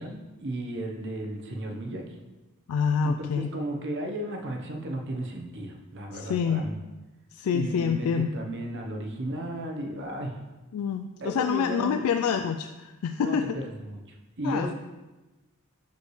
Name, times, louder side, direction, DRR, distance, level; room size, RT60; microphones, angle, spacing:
voice 1, 0.0-2.0 3.0-6.8 7.5-10.4 11.2-12.0 13.2-14.7, right 1 dB, 55° right, 2 dB, 0.9 m, -34 dB
voice 2, 2.7-3.5 6.1-6.7 7.3-8.3 10.7-13.4 14.4-14.7, left 6 dB, 75° left, 8 dB, 0.3 m, -27 dB
6.5 x 5.2 x 3.2 m, 1.1 s
head